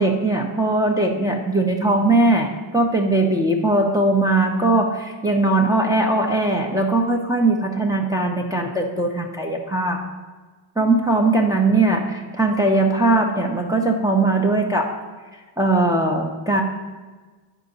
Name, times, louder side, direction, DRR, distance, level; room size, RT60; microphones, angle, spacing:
voice 1, 0.0-10.0 10.8-14.9 15.6-16.6, right 2 dB, 10° right, -2 dB, 0.9 m, -20 dB
10.0 x 4.5 x 4.0 m, 1.3 s
supercardioid pair, 75°, 45 cm